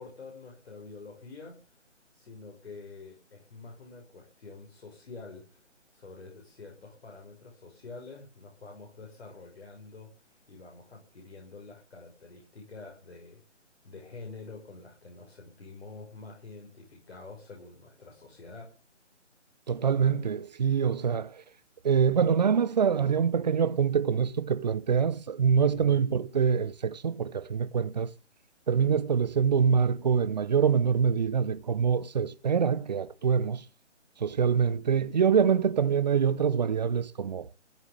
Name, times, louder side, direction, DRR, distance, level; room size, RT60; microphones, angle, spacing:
voice 1, 0.0-1.8 2.1-5.6 5.9-13.4 13.8-18.7 25.7-26.0, left 3 dB, 55° left, 6.4 m, -47 dB
voice 2, 19.7-21.4 21.8-28.1 28.7-33.7 34.2-37.5, right 7 dB, 35° right, 0.7 m, -25 dB
16.0 x 6.9 x 9.6 m
figure-of-eight pair, 155°, 36 cm